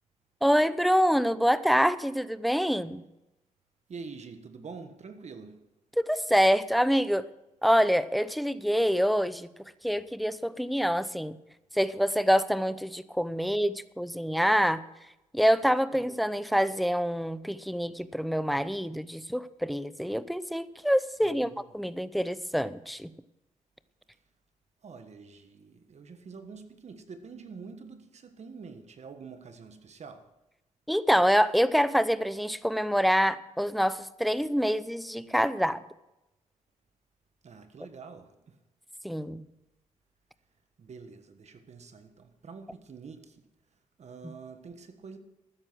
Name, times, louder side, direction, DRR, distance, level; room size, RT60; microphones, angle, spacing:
voice 1, 0.4-3.0 6.0-7.3 7.6-11.4 11.7-14.8 15.3-23.1 30.9-35.8 39.0-39.4, equal, ahead, 0.7 m, -26 dB
voice 2, 3.9-5.6 15.9-16.0 21.2-21.7 24.8-30.3 37.4-38.6 40.8-43.4 44.0-45.2, right 5 dB, 55° right, 1.4 m, -46 dB
13.0 x 9.7 x 6.2 m
cardioid pair, 65°, 13 cm